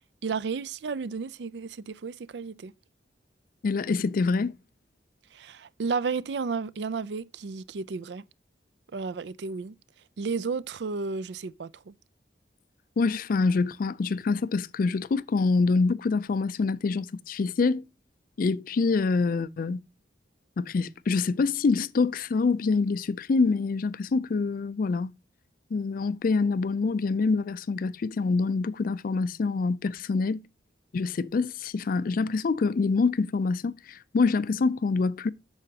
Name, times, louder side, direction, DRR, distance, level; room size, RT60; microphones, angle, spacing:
voice 1, 0.2-2.7 5.3-8.2 8.9-9.8 10.2-11.9, right 5 dB, 70° right, 0.4 m, -32 dB
voice 2, 3.6-4.5 13.0-17.8 18.4-19.8 20.6-25.1 25.7-30.4 30.9-35.3, left 4 dB, 50° left, 0.4 m, -26 dB
9.0 x 6.5 x 2.8 m
head